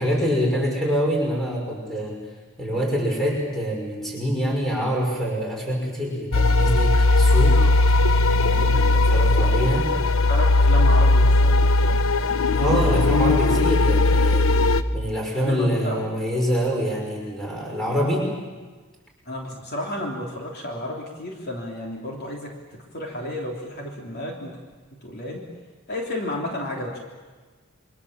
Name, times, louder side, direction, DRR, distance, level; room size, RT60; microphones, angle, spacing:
voice 1, 0.0-2.2 2.6-7.6 8.4-9.9 12.5-14.5 14.9-18.3, equal, ahead, -2 dB, 5.7 m, -25 dB
sound 1, 6.3-14.8, left 2 dB, 70° left, 1.0 m, -18 dB
voice 2, 8.6-8.9 10.3-12.0 15.3-16.1 17.9-18.0 19.3-24.6 25.0-25.4 25.9-27.0, left 1 dB, 50° left, -1 dB, 3.3 m, -32 dB
27.5 x 24.5 x 7.4 m, 1.3 s
head